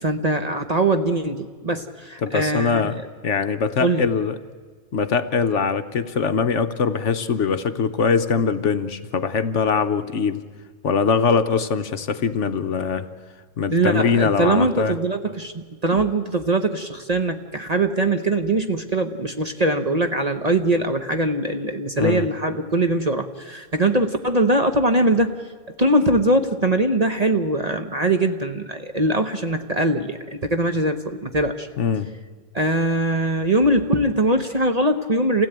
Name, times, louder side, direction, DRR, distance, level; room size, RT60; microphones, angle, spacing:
voice 1, 0.0-2.9 3.8-4.0 13.7-25.4 25.8-31.7 32.5-35.5, right 1 dB, 30° right, 7 dB, 1.0 m, -22 dB
voice 2, 2.2-3.0 3.2-4.4 4.9-10.4 10.8-13.1 13.6-15.0 22.0-22.3 31.8-32.1, left 5 dB, 60° left, 10 dB, 1.1 m, -22 dB
27.5 x 16.5 x 9.0 m, 1.5 s
omnidirectional pair, 1.5 m